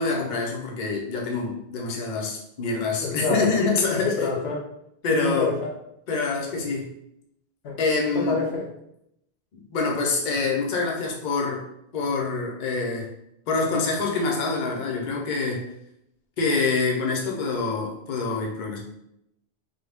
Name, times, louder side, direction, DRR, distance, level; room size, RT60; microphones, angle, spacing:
voice 1, 0.0-4.3 5.0-5.5 6.1-6.9 7.8-8.4 9.5-11.6 11.9-13.1 13.5-15.7 16.4-18.8, left 4 dB, 55° left, -1 dB, 0.8 m, -26 dB
voice 2, 3.0-3.5 4.0-4.7 5.1-5.7 7.6-7.8 8.1-8.7, left 4 dB, 80° left, -1 dB, 1.0 m, -27 dB
3.6 x 2.2 x 3.4 m, 0.78 s
omnidirectional pair, 1.0 m